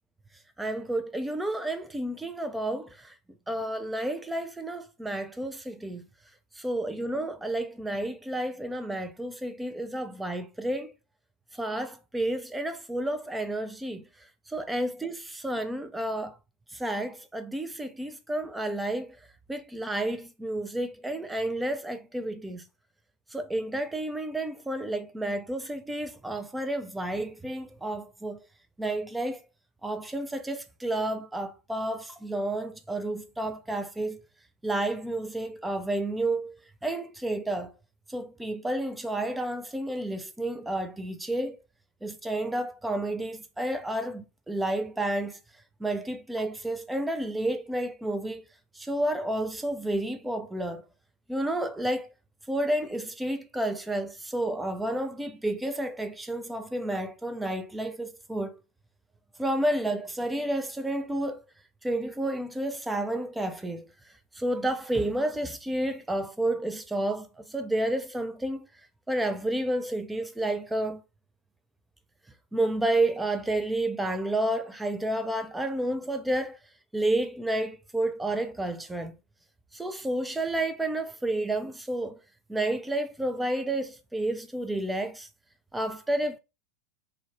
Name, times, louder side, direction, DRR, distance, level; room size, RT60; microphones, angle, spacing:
voice 1, 0.6-3.1 3.5-6.1 6.6-10.9 11.5-14.0 14.5-16.3 16.7-19.2 19.5-22.6 23.3-28.4 28.8-29.4 29.8-34.2 34.6-36.5 36.8-37.7 38.1-41.6 42.0-45.4 45.8-48.4 48.8-50.8 51.3-52.1 52.5-58.6 59.4-61.4 61.8-63.9 64.4-68.7 69.1-71.0 72.5-76.6 76.9-79.1 79.7-82.2 82.5-85.3 85.7-86.4, right 1 dB, 5° right, 0.3 m, -30 dB
2.5 x 2.1 x 3.0 m
figure-of-eight pair, 90°, 0 cm